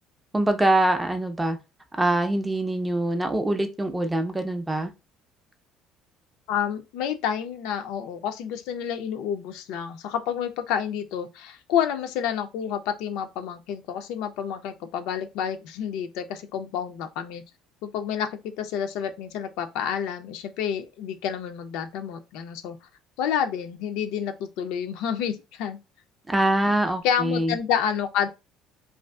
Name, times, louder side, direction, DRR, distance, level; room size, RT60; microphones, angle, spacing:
voice 1, 0.3-1.6 2.0-4.9 26.3-27.6, right 1 dB, 10° right, 0.4 m, -24 dB
voice 2, 6.5-17.4 17.9-22.8 23.2-25.8 26.6-26.8 27.0-28.3, left 8 dB, 80° left, 0.4 m, -29 dB
2.5 x 2.3 x 2.2 m
cardioid pair, 125°, 0 cm